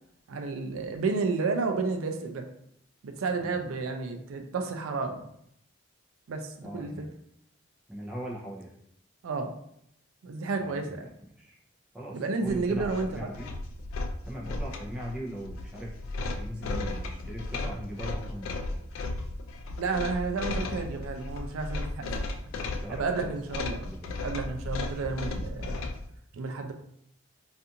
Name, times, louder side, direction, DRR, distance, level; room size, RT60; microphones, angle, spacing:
voice 1, 0.3-2.5 3.0-5.3 6.3-6.9 9.2-9.5 10.2-11.1 12.1-13.3 19.8-22.1 22.9-23.9 24.2-25.8 26.3-26.7, right 4 dB, 90° right, 5 dB, 0.4 m, -31 dB
voice 2, 6.6-7.1 7.9-8.7 10.6-11.6 11.9-13.5 14.3-15.9 16.2-18.8 22.7-24.2 24.7-25.3, equal, 5° right, -4 dB, 0.4 m, -40 dB
sound 1, 12.5-26.1, left 2 dB, 85° left, 0.3 m, -35 dB
2.4 x 2.4 x 2.7 m, 0.71 s
head